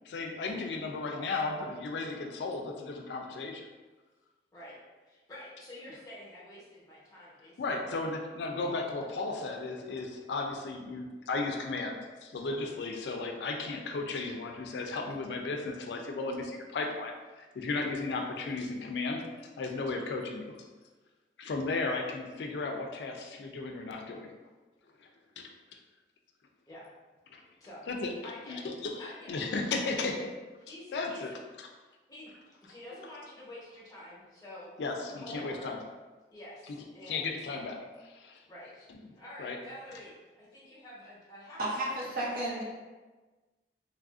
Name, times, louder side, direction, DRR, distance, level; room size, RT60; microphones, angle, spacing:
voice 1, 0.1-3.7 7.6-12.0 12.2-20.7 21.4-24.3 25.0-25.1 25.4-25.5 27.3-27.4 27.9-28.1 28.5-30.3 30.9-31.3 34.8-35.8 37.0-38.4 39.4-39.6, left 3 dB, 75° left, 3 dB, 0.4 m, -35 dB
voice 2, 0.8-1.2 4.5-4.8 5.1-7.6 8.5-8.7 21.8-22.0 26.7-26.9 27.6-27.8 28.2-28.7 29.0-29.5 29.8-30.2 30.6-31.4 32.1-34.7 35.2-35.8 36.3-37.5 38.4-38.9 39.1-41.9 42.3-42.6, left 1 dB, 20° left, -7 dB, 0.8 m, -48 dB
voice 3, 41.6-42.6, right 1 dB, 50° right, -6 dB, 0.8 m, -32 dB
3.3 x 2.4 x 2.4 m, 1.3 s
head